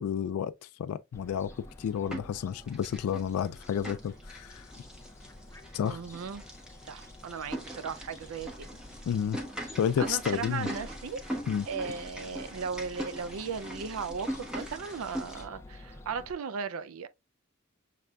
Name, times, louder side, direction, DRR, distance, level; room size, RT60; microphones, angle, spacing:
voice 1, 0.0-1.5 1.8-4.7 5.7-6.0 9.1-9.4 9.8-10.7 11.5-11.6, left 8 dB, 90° left, 0.3 m, -31 dB
Fowl, 1.1-16.3, left 1 dB, 10° left, 0.5 m, -51 dB
sound 1, 1.5-2.4 2.7-15.4, equal, 5° right, 1.0 m, -41 dB
voice 2, 5.8-6.4 6.8-8.7 10.0-11.2 11.7-17.1, right 6 dB, 75° right, 0.4 m, -37 dB
6.5 x 3.3 x 2.3 m
head